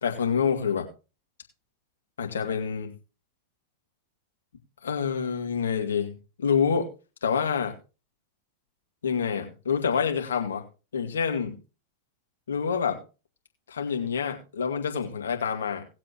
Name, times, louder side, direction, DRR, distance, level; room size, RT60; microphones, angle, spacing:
voice 1, 0.0-0.9 2.2-2.9 4.8-6.9 7.2-7.8 9.0-10.6 10.9-11.6 12.5-13.0 13.7-15.9, left 6 dB, 65° left, 4 dB, 2.1 m, -27 dB
19.5 x 7.5 x 3.0 m, 0.32 s
figure-of-eight pair, 90°, 0 cm